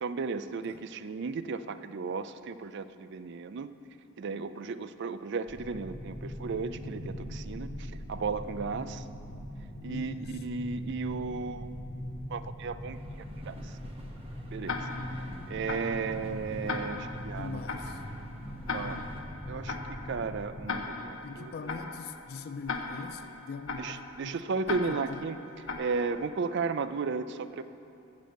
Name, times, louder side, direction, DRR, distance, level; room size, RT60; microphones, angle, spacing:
voice 1, 0.0-3.7 4.2-9.0 9.8-11.7 12.3-13.0 13.5-13.8 14.5-14.9 15.5-17.6 18.7-19.0 19.5-19.8 20.0-21.5 23.8-25.4 25.8-27.6, right 4 dB, 55° right, 13 dB, 0.4 m, -34 dB
sound 1, 5.5-20.7, left 1 dB, 5° right, 1.5 m, -41 dB
voice 2, 9.8-10.4 17.4-18.0 21.2-24.4 24.7-25.3, left 4 dB, 50° left, 10 dB, 0.4 m, -42 dB
sound 2, 12.9-19.2, equal, 30° right, 1.0 m, -52 dB
Tick-tock, 14.7-26.5, left 4 dB, 75° left, 0.8 m, -39 dB
14.0 x 5.2 x 7.8 m, 2.9 s
head